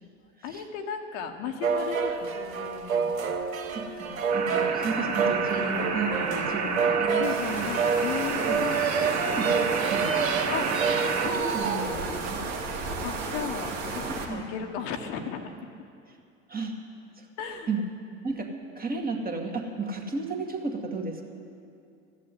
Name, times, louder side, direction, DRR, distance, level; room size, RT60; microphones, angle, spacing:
voice 1, 0.4-3.3 7.1-8.8 10.5-10.7 11.2-11.6 13.0-15.5 17.4-17.7, left 7 dB, 60° left, 5 dB, 1.3 m, -35 dB
sound 1, 1.6-12.3, right 5 dB, 85° right, 1.0 m, -28 dB
voice 2, 3.7-7.7 8.3-8.6 9.0-10.2 11.2-12.4 14.0-14.4 16.5-16.8 17.2-17.3 17.7-17.8 18.2-21.2, right 3 dB, 20° right, 1 dB, 2.1 m, -33 dB
sound 2, 4.3-11.3, right 5 dB, 40° right, 1.7 m, -30 dB
sound 3, 7.2-14.2, right 3 dB, 70° right, 2.3 m, -34 dB
14.5 x 7.3 x 9.9 m, 2.5 s
hypercardioid pair, 80°, 39 cm